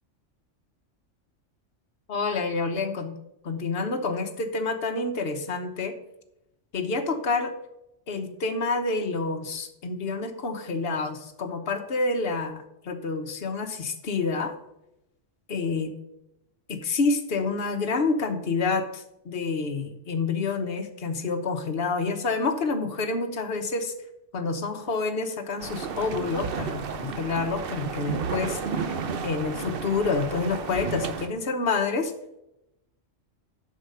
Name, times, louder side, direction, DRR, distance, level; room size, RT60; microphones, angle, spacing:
voice 1, 2.1-3.1 3.4-5.9 6.7-7.5 8.1-14.5 15.5-16.0 16.7-23.9 24.3-32.1, left 4 dB, 55° left, 6 dB, 1.2 m, -28 dB
sound 1, 25.6-31.3, right 5 dB, 55° right, 0.8 m, -32 dB
7.7 x 6.4 x 5.5 m, 0.87 s
omnidirectional pair, 1.3 m